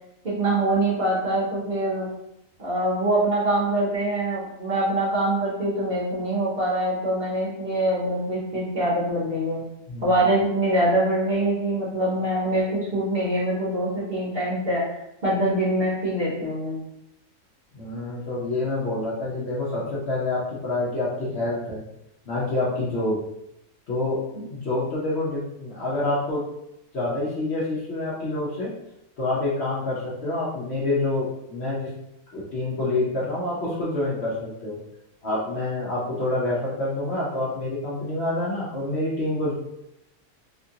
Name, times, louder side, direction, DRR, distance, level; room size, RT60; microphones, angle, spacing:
voice 1, 0.2-2.1 2.6-9.6 10.0-14.8 15.2-16.8 24.3-24.4, right 1 dB, 45° right, -7 dB, 0.9 m, -24 dB
voice 2, 9.9-10.2 17.7-21.8 22.3-23.2 23.9-24.2 24.5-26.4 26.9-28.7 29.2-31.9 32.3-34.8 35.2-39.5, left 2 dB, 55° left, -7 dB, 0.8 m, -27 dB
2.8 x 2.4 x 2.7 m, 0.81 s
omnidirectional pair, 1.6 m